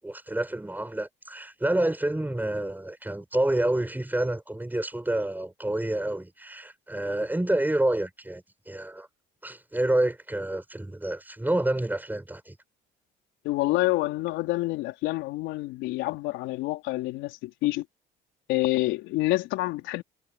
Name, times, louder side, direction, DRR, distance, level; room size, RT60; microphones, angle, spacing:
voice 1, 0.0-9.1 9.4-12.6, right 1 dB, 10° right, 7.1 m, -28 dB
voice 2, 13.4-17.9 18.5-20.0, left 19 dB, 80° left, 3.7 m, -27 dB
supercardioid pair, 70°, 19 cm